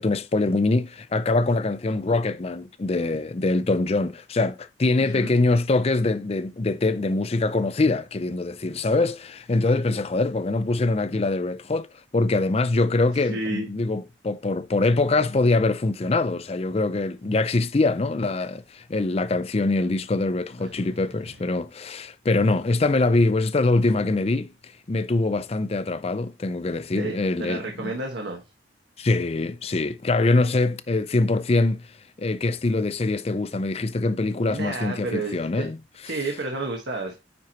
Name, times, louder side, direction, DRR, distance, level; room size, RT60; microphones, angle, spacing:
voice 1, 0.0-11.9 12.1-27.9 29.0-35.8, left 2 dB, 35° left, 0.5 m, -23 dB
voice 2, 13.3-13.7 26.9-28.4 34.4-35.7 36.0-37.1, right 2 dB, 70° right, 1.3 m, -31 dB
9.5 x 4.6 x 2.9 m
head